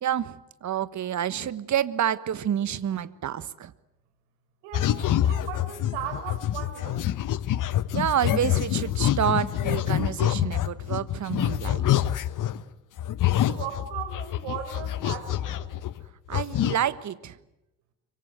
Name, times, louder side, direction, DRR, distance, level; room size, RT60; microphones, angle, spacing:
voice 1, 0.0-3.7 7.7-12.1 16.3-17.4, right 10 dB, 35° right, 1.4 m, -28 dB
voice 2, 4.6-7.1 13.5-15.7, right 9 dB, 65° right, 5.2 m, -37 dB
sound 1, 4.7-12.6 13.0-16.1 16.3-16.7, left 12 dB, 40° left, 1.1 m, -26 dB
25.0 x 25.0 x 7.9 m
hypercardioid pair, 65°, 48 cm